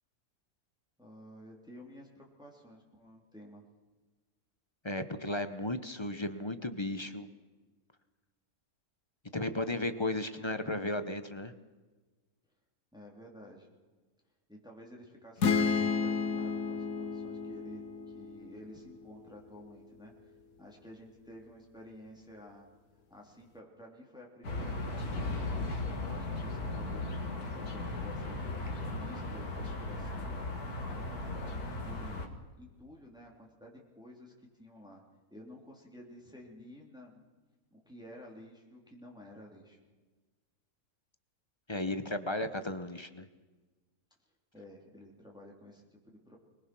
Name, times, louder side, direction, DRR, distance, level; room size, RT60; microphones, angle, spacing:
voice 1, 1.0-3.6 12.9-13.7 14.5-20.3 20.6-22.7 23.1-27.2 27.7-28.5 28.9-30.4 30.8-34.3 34.6-35.0 35.3-37.2 37.7-39.8 44.5-46.4, left 1 dB, 5° right, -1 dB, 3.2 m, -52 dB
voice 2, 4.8-7.3 9.3-11.5 41.7-43.3, left 2 dB, 20° left, 10 dB, 0.9 m, -35 dB
sound 1, 15.4-19.1, left 5 dB, 70° left, 1.5 m, -32 dB
sound 2, 24.4-32.3, left 2 dB, 90° left, 2.5 m, -37 dB
23.5 x 21.0 x 6.2 m, 1.3 s
omnidirectional pair, 1.6 m